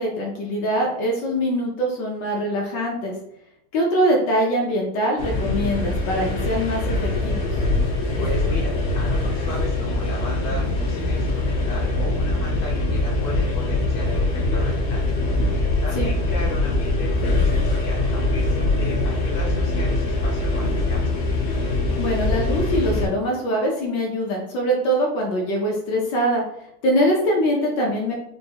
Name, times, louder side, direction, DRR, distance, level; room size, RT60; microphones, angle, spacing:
voice 1, 0.0-3.1 3.7-7.4 15.9-16.1 22.0-26.4 26.8-28.1, equal, 65° left, -1 dB, 1.2 m, -23 dB
sound 1, 5.2-23.1, left 2 dB, 85° left, 2.3 m, -23 dB
voice 2, 8.2-15.0 15.8-21.1, equal, 45° left, -3 dB, 0.5 m, -35 dB
5.4 x 2.2 x 2.8 m, 0.79 s
omnidirectional pair, 2.4 m